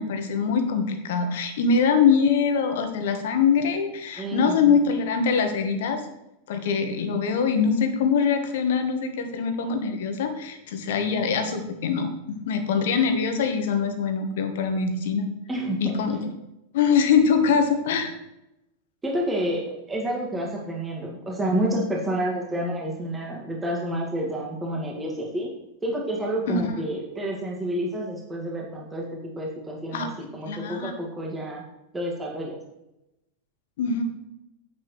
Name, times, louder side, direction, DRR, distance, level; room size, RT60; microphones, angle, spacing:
voice 1, 0.0-6.0 6.5-15.2 15.8-16.2 16.7-18.1 26.5-26.7 29.9-30.1 30.5-30.9 33.8-34.0, left 6 dB, 55° left, 7 dB, 1.5 m, -23 dB
voice 2, 4.2-4.7 15.5-16.2 19.0-25.5 25.8-31.6 31.9-32.6, right 1 dB, 15° right, -2 dB, 2.0 m, -29 dB
9.7 x 8.4 x 3.2 m, 0.91 s
figure-of-eight pair, 90°, 0 cm